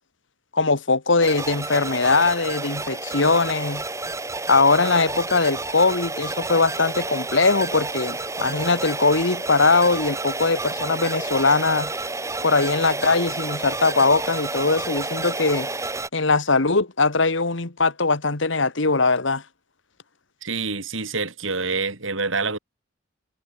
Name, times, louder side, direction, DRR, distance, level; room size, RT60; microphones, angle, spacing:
voice 1, 0.5-3.8 4.5-11.9 12.4-15.7 16.1-19.4, left 3 dB, 70° left, 1.7 m, -21 dB
sound 1, 1.2-16.1, right 2 dB, 15° right, 2.2 m, -30 dB
voice 2, 20.4-22.6, right 4 dB, 80° right, 4.8 m, -26 dB
head